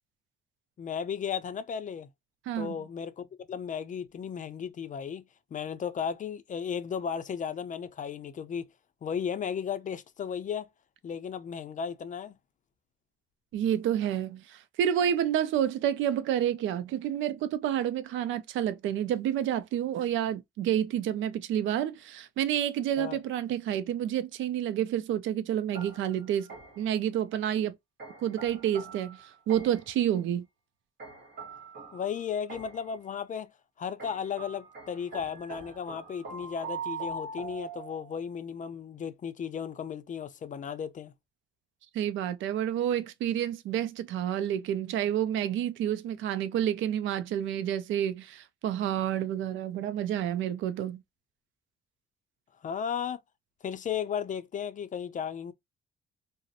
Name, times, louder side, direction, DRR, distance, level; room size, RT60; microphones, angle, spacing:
voice 1, 0.8-2.1 2.6-5.3 5.5-8.7 9.0-10.7 11.0-12.4 23.0-23.2 31.9-33.5 33.8-41.1 52.6-53.2 53.6-55.5, left 7 dB, 40° left, 0.4 m, -35 dB
voice 2, 2.5-2.8 13.5-26.5 26.8-27.7 28.2-29.2 29.5-30.5 41.9-51.0, right 10 dB, 75° right, 0.4 m, -29 dB
sound 1, 25.7-27.0 28.0-30.0 31.0-33.0 34.0-38.3, right 4 dB, 55° right, 1.2 m, -43 dB
2.5 x 2.0 x 2.6 m
cardioid pair, 90°, 20 cm